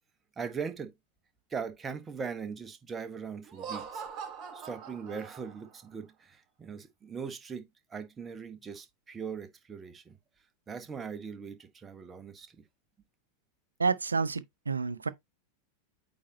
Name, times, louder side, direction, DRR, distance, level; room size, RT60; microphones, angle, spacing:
voice 1, 0.4-0.9 1.5-4.0 4.5-7.6 7.9-10.1 10.7-12.6, right 6 dB, 20° right, 1.2 m, -40 dB
Laughter, 3.4-5.8, right 6 dB, 35° right, 3.7 m, -42 dB
voice 2, 13.8-15.1, right 4 dB, 75° right, 0.6 m, -29 dB
8.6 x 4.1 x 2.7 m
figure-of-eight pair, 90°, 0 cm